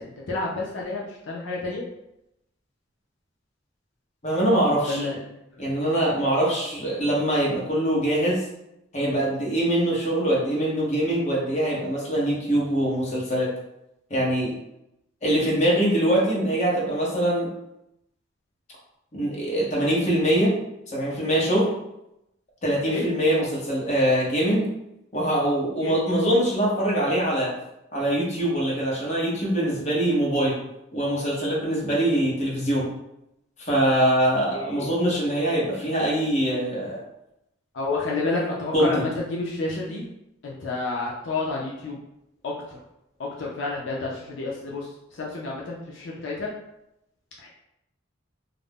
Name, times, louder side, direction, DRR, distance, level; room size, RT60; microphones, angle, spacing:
voice 1, 0.0-1.8 4.9-5.2 5.7-5.8 22.9-23.0 25.8-26.0 34.5-34.9 37.7-40.0 40.4-42.0 42.4-42.8 43.2-44.9 45.1-46.5 47.4-47.5, left 3 dB, 75° left, -3 dB, 0.5 m, -30 dB
voice 2, 4.2-5.1 5.6-8.5 8.9-13.5 14.1-14.5 15.2-17.5 19.1-20.6 20.9-21.7 22.6-24.7 25.1-27.5 27.9-30.6 30.9-32.9 33.6-37.0 38.7-39.1, right 1 dB, 40° left, -4 dB, 0.8 m, -23 dB
2.4 x 2.0 x 3.4 m, 0.85 s
head